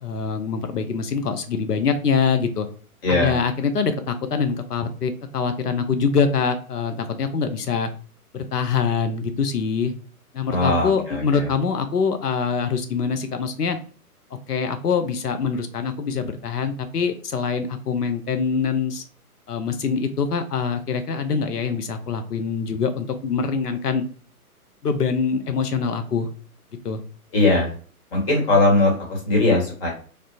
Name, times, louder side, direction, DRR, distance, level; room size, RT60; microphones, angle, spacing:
voice 1, 0.0-2.7 3.1-7.9 8.3-9.9 10.3-13.8 14.3-19.0 19.5-24.0 24.8-26.3 26.8-27.0, left 5 dB, 85° left, 8 dB, 0.6 m, -24 dB
voice 2, 3.0-3.4 10.5-11.4 27.3-27.7 28.1-29.9, left 2 dB, 40° left, -1 dB, 1.4 m, -20 dB
3.3 x 2.4 x 2.7 m, 0.41 s
figure-of-eight pair, 125°, 46 cm